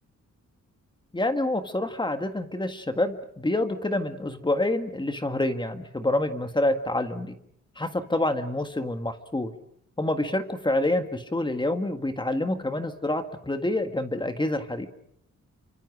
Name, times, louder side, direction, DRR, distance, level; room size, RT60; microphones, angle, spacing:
voice 1, 1.1-7.3 7.8-9.5 10.0-14.9, left 1 dB, 15° left, 8 dB, 1.7 m, -27 dB
30.0 x 25.5 x 6.3 m, 0.69 s
wide cardioid pair, 170°, 30 cm